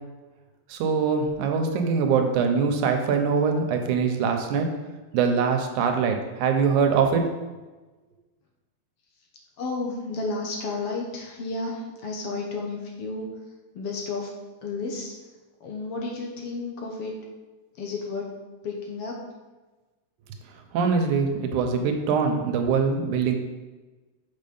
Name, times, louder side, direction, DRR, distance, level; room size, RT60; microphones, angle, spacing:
voice 1, 0.7-4.7 5.1-7.2 20.7-23.4, right 5 dB, 85° right, 5 dB, 2.3 m, -23 dB
voice 2, 9.6-13.3 13.8-14.3 14.6-15.1 15.6-17.1 17.8-18.3 18.6-19.2, left 3 dB, 65° left, 0 dB, 1.8 m, -32 dB
7.0 x 5.5 x 5.3 m, 1.2 s
omnidirectional pair, 3.4 m